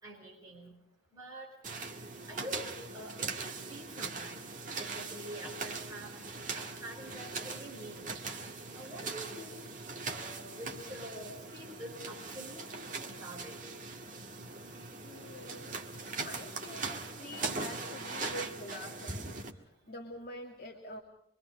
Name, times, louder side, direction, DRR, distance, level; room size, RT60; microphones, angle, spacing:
voice 1, 0.0-0.7 1.1-1.5 2.3-4.5 4.8-6.1 6.5-8.2 8.7-9.6 10.1-12.7 13.0-13.6 17.6-17.7 18.3-18.4, equal, 15° right, -4 dB, 5.6 m, -46 dB
sound 1, 1.6-19.5, right 4 dB, 40° right, 1.9 m, -41 dB
voice 2, 15.0-15.8 16.2-19.5 19.9-21.0, left 1 dB, 45° left, 0 dB, 2.7 m, -46 dB
25.0 x 24.5 x 5.2 m, 0.74 s
head